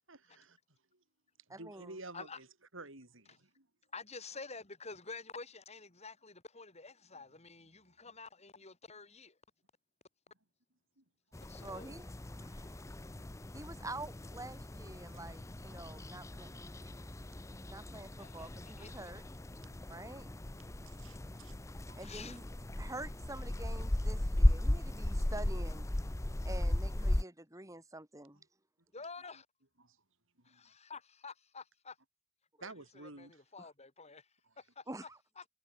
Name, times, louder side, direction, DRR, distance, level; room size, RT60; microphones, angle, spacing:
voice 1, 0.1-0.6 1.5-2.5 2.7-3.7 11.0-11.1 13.2-13.3 19.6-20.1 20.5-21.5 21.9-22.0 25.2-25.3 26.2-26.4 28.3-28.4 29.8-30.0 30.5-30.7 32.6-33.4, right 2 dB, 60° right, 6.5 m, -52 dB
voice 2, 1.5-1.9 11.6-12.1 12.4-12.8 13.5-16.5 17.6-19.2 19.9-20.4 22.0-22.4 22.8-25.9 26.4-28.4 33.6-33.7 34.9-35.2, right 2 dB, 15° right, 4.6 m, -47 dB
voice 3, 3.9-9.4 11.5-12.0 18.2-19.1 22.0-22.4 28.9-29.5 30.4-32.0 32.6-34.3 34.6-35.1 35.4-35.5, left 4 dB, 30° left, 4.7 m, -49 dB
sound 1, 11.3-27.2, left 1 dB, 15° left, 0.6 m, -36 dB
head